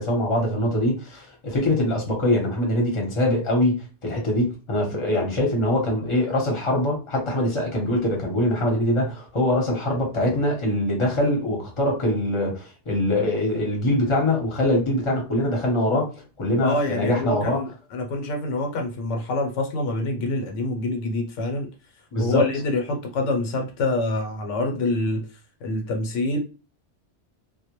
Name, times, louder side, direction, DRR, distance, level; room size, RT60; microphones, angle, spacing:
voice 1, 0.0-16.1 16.4-17.6 22.1-22.4, left 1 dB, 30° left, 0.8 m, -23 dB
voice 2, 16.6-21.7 22.2-25.3 25.6-26.4, left 2 dB, 85° left, 1.0 m, -26 dB
2.1 x 2.1 x 2.9 m
omnidirectional pair, 1.2 m